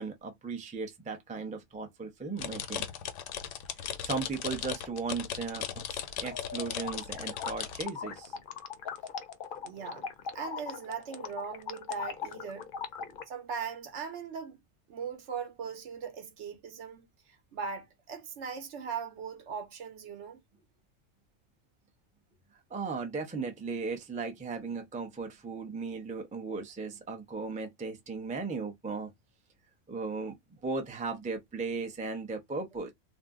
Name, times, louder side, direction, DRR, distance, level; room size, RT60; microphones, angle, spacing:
voice 1, 0.0-2.9 3.7-8.4 13.0-13.2 22.7-29.1 29.9-30.4 30.6-32.9, right 4 dB, 10° right, 0.3 m, -37 dB
sound 1, 2.4-7.9, left 9 dB, 85° left, 0.9 m, -37 dB
sound 2, 6.2-13.2, left 7 dB, 60° left, 0.6 m, -40 dB
voice 2, 9.6-10.1 10.3-12.7 13.3-14.6 14.9-20.4, right 6 dB, 70° right, 1.0 m, -39 dB
2.6 x 2.0 x 3.5 m
omnidirectional pair, 1.3 m